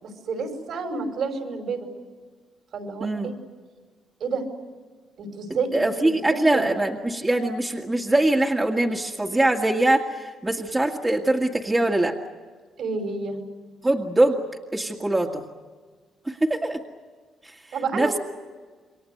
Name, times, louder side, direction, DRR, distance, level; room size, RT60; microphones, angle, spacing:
voice 1, 0.0-1.9 2.7-3.3 4.2-4.4 5.2-6.7 12.8-13.4 17.7-18.2, right 4 dB, 70° right, 5 dB, 5.5 m, -30 dB
voice 2, 3.0-3.3 5.7-12.2 13.8-14.4 14.7-15.5 16.3-16.8 17.4-17.6 17.9-18.2, right 1 dB, 15° right, 0 dB, 2.0 m, -23 dB
28.5 x 23.0 x 8.0 m, 1.4 s
cardioid pair, 90°, 0 cm